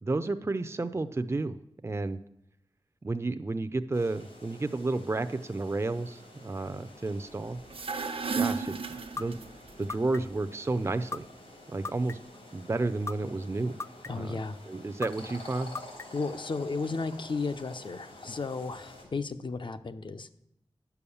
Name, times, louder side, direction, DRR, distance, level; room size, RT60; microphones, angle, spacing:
voice 1, 0.0-1.6 1.8-2.2 3.0-7.6 8.3-8.8 9.2-9.4 9.8-11.3 11.7-12.2 12.5-13.7 14.1-14.4 14.7-15.7, right 2 dB, 30° right, 10 dB, 0.5 m, -31 dB
sound 1, 3.9-19.0, left 1 dB, 90° left, 4.1 m, -50 dB
sound 2, 7.7-9.7, right 5 dB, 80° right, 1.0 m, -33 dB
sound 3, 9.2-9.3 9.9-10.4 11.1-11.2 11.8-12.4 13.1-13.2 13.8-14.3 15.0-15.1 15.8-16.3, left 3 dB, 30° left, 0.3 m, -36 dB
voice 2, 14.1-14.6 16.1-20.3, left 4 dB, 60° left, 10 dB, 0.7 m, -34 dB
11.0 x 7.0 x 7.0 m, 0.77 s
wide cardioid pair, 75°, 9 cm